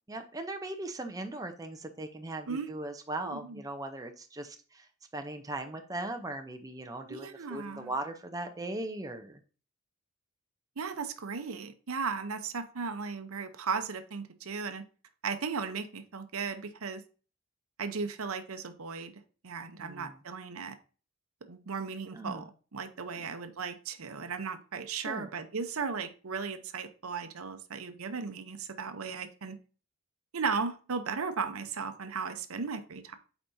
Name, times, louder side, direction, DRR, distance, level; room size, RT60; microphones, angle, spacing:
voice 1, 0.1-4.8 5.1-9.4 19.8-20.1 22.1-22.5 24.9-25.3, right 2 dB, 15° right, 5 dB, 0.6 m, -39 dB
voice 2, 3.2-3.6 7.1-7.9 10.8-14.8 15.2-17.0 17.8-19.1 19.4-20.8 21.4-29.6 30.3-33.1, right 5 dB, 70° right, 10 dB, 0.7 m, -36 dB
8.2 x 4.5 x 2.6 m, 0.37 s
head